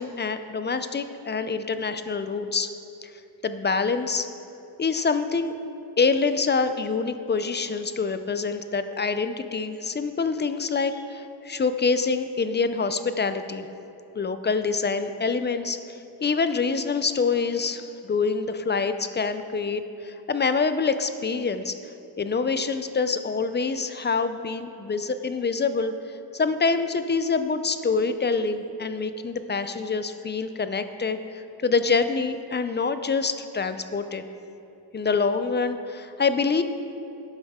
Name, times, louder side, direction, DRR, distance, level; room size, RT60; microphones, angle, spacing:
voice 1, 0.0-2.7 3.0-3.1 3.4-4.3 4.8-5.5 6.0-13.7 14.2-21.8 22.2-25.9 26.3-34.2 34.9-36.6, left 4 dB, 25° left, 10 dB, 0.4 m, -26 dB
12.0 x 9.5 x 3.6 m, 2.9 s
wide cardioid pair, 135°, 41 cm